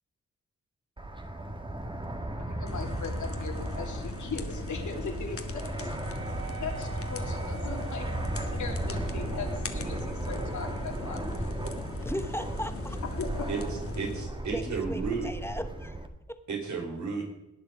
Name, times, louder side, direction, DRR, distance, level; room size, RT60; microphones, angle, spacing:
Fixed-wing aircraft airplane, 1.0-16.1, right 1 dB, 15° right, 1.8 m, -35 dB
voice 1, 2.4-5.9 6.6-8.1 8.4-11.5 13.1-13.5, left 5 dB, 80° left, 2 dB, 3.1 m, -39 dB
sound 1, 2.7-14.2, left 4 dB, 50° left, 1.7 m, -40 dB
Wind instrument woodwind instrument, 5.9-14.9, right 7 dB, 45° right, 1.9 m, -50 dB
voice 2, 12.0-13.0 14.5-16.0 16.3-16.4, equal, 10° left, 9 dB, 1.1 m, -37 dB
voice 3, 13.9-15.3 16.5-17.3, right 5 dB, 75° right, 2 dB, 4.5 m, -33 dB
19.0 x 10.0 x 5.2 m, 0.95 s
wide cardioid pair, 105°, 29 cm